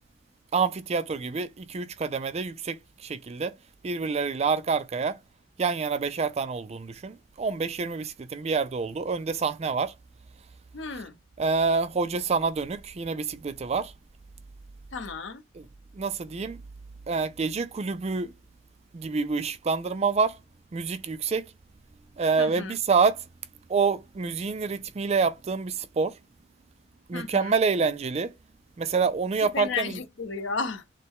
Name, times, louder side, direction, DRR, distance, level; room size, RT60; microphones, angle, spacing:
voice 1, 0.5-3.6 3.8-5.2 5.6-9.9 11.4-13.9 15.5-15.7 15.9-16.6 17.1-18.3 18.9-20.4 20.7-21.5 22.2-23.2 23.7-26.2 27.1-28.3 28.8-30.0, right 5 dB, 35° right, 0.4 m, -27 dB
voice 2, 10.7-11.2 14.9-15.4 22.4-22.7 27.1-27.5 29.4-30.8, left 4 dB, 70° left, 0.8 m, -33 dB
6.4 x 2.2 x 3.5 m
head